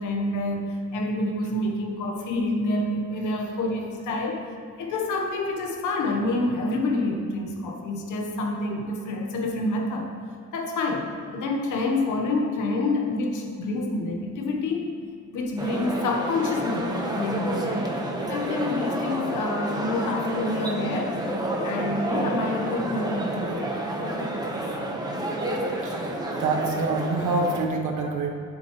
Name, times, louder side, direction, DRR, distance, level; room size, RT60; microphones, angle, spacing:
voice 1, 0.0-4.4 4.8-10.1 10.5-14.9 15.3-17.9 18.3-21.2 21.6-24.5, left 2 dB, 80° left, 1 dB, 1.5 m, -28 dB
sound 1, 15.6-27.7, right 1 dB, 15° right, 1.4 m, -30 dB
voice 2, 25.8-28.3, right 3 dB, 75° right, 0 dB, 1.6 m, -26 dB
10.5 x 8.2 x 3.3 m, 2.4 s
cardioid pair, 90°, 30 cm